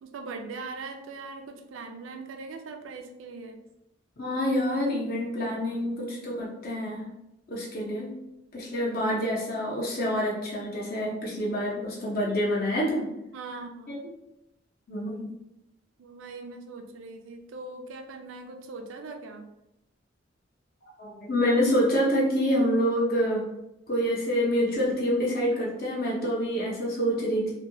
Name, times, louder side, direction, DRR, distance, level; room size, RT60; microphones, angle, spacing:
voice 1, 0.0-3.6 13.3-14.0 16.0-19.5, right 3 dB, 85° right, 4 dB, 0.4 m, -40 dB
voice 2, 4.2-7.1 7.5-8.2 8.5-13.1 13.9-14.0 14.9-15.3 21.0-23.4 23.9-27.5, equal, 50° left, -3 dB, 0.6 m, -27 dB
2.9 x 2.2 x 2.7 m, 0.87 s
head